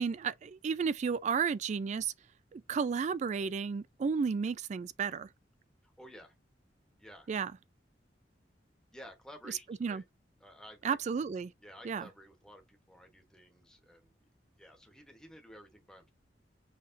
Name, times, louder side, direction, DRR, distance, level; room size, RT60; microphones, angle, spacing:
voice 1, 0.0-2.1 2.5-5.3 7.3-7.5 9.5-10.0 10.8-11.5 11.8-12.1, right 6 dB, 40° right, 0.3 m, -33 dB
voice 2, 5.8-6.3 7.0-7.3 8.9-10.0 10.4-11.0 11.6-14.1 14.5-16.1, equal, 5° left, 1.0 m, -53 dB
5.6 x 3.2 x 2.6 m
head